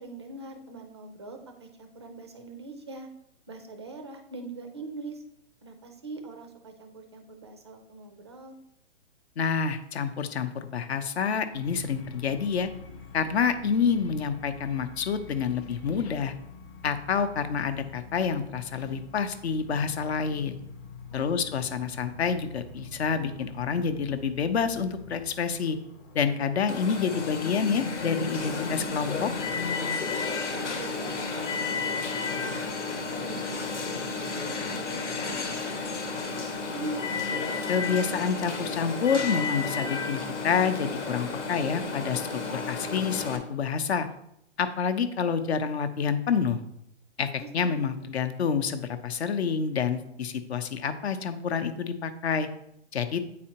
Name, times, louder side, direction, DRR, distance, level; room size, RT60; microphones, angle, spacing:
voice 1, 0.0-3.1 3.5-5.2 5.6-8.6 21.1-21.4 30.2-32.6 33.1-35.7 36.0-37.0 47.4-47.7, right 3 dB, 25° right, 5 dB, 0.4 m, -43 dB
voice 2, 9.4-12.7 13.1-16.3 16.8-20.6 21.1-25.8 26.1-29.3 37.7-44.1 44.6-46.6 47.2-52.5 52.9-53.2, left 6 dB, 65° left, 10 dB, 0.8 m, -28 dB
sound 1, 11.5-29.7, left 3 dB, 25° left, 0.6 m, -46 dB
Alarm, 26.7-43.4, left 4 dB, 90° left, 1.3 m, -32 dB
8.6 x 4.2 x 2.8 m, 0.76 s
hypercardioid pair, 155°, 35 cm